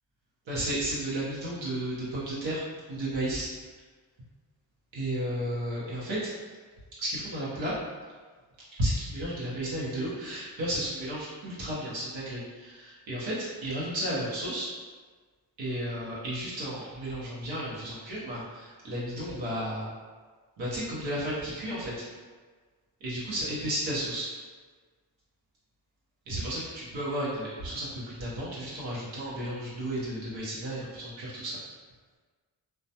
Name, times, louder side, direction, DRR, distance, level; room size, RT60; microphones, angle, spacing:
voice 1, 0.5-2.6 2.9-3.5 4.9-6.3 7.0-7.7 8.8-14.7 15.6-19.9 20.6-21.9 23.0-24.3 26.3-31.6, right 1 dB, 80° right, -8 dB, 0.8 m, -33 dB
2.2 x 2.1 x 2.7 m, 1.4 s
cardioid pair, 60°, 44 cm